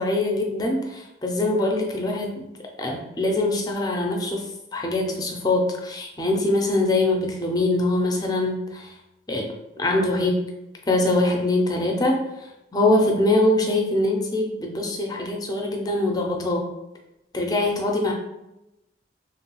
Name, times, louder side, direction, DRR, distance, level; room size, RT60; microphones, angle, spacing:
voice 1, 0.0-2.5 2.8-4.4 4.7-8.9 9.3-9.5 9.8-10.5 10.9-12.2 12.7-16.7 17.3-18.1, left 2 dB, 20° left, 1 dB, 0.4 m, -23 dB
3.0 x 2.2 x 2.9 m, 0.91 s
head